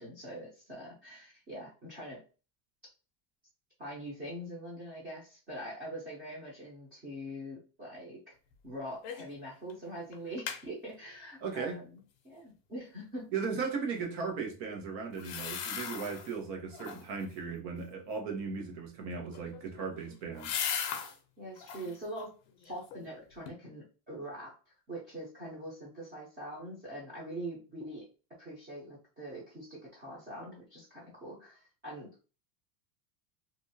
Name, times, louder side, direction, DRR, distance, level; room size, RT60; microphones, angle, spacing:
voice 1, 0.0-2.2 3.8-8.3 8.6-13.3 21.4-22.3 22.6-24.5 24.9-28.1 28.4-32.3, right 1 dB, 20° right, 0.5 m, -43 dB
sound 1, 9.0-9.4 9.7-9.8 10.1-10.6 15.1-16.3 16.7-17.2 19.2-21.2 21.6-22.0 22.5-23.1 23.5-23.6, left 7 dB, 45° left, 0.5 m, -38 dB
voice 2, 11.4-11.8 13.3-20.6, right 5 dB, 90° right, 1.1 m, -37 dB
2.7 x 2.3 x 2.6 m
cardioid pair, 170°, 50 cm